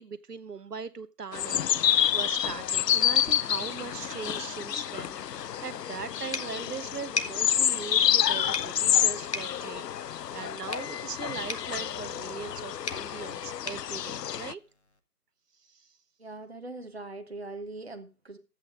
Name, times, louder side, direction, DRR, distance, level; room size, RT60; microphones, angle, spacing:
voice 1, 0.0-14.6 15.7-15.9, right 5 dB, 75° right, 12 dB, 0.9 m, -40 dB
sound 1, 1.3-14.5, left 10 dB, 85° left, 0.5 m, -28 dB
sound 2, 6.3-15.0, left 3 dB, 45° left, 0.9 m, -41 dB
voice 2, 16.2-18.4, right 2 dB, 40° right, 7 dB, 0.9 m, -41 dB
12.5 x 8.3 x 3.7 m, 0.33 s
figure-of-eight pair, 180°, 47 cm